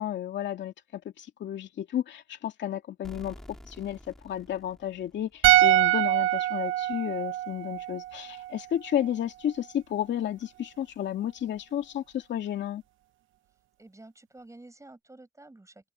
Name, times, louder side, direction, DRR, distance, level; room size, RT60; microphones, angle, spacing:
voice 1, 0.0-3.4 3.7-12.8, left 10 dB, 65° left, 2.2 m, -32 dB
sound 1, 3.0-5.8, equal, ahead, 3.5 m, -49 dB
sound 2, 5.4-8.7 8.9-9.1, right 15 dB, 85° right, 1.0 m, -24 dB
voice 2, 13.8-15.9, right 2 dB, 15° right, 7.1 m, -50 dB
cardioid pair, 90°, 20 cm